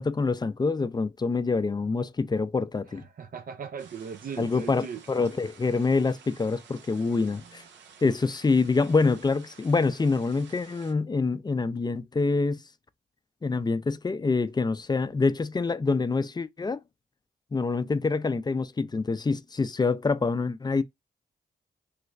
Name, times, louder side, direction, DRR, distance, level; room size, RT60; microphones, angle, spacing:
voice 1, 0.0-3.0 4.4-7.6 8.0-12.6 13.4-16.8 17.5-20.8, left 4 dB, 25° left, 0.4 m, -26 dB
voice 2, 2.9-5.0 7.2-7.5, right 7 dB, 50° right, 0.5 m, -39 dB
sound 1, 3.8-10.9, right 6 dB, 90° right, 0.8 m, -52 dB
3.2 x 3.0 x 2.4 m
supercardioid pair, 50°, 18 cm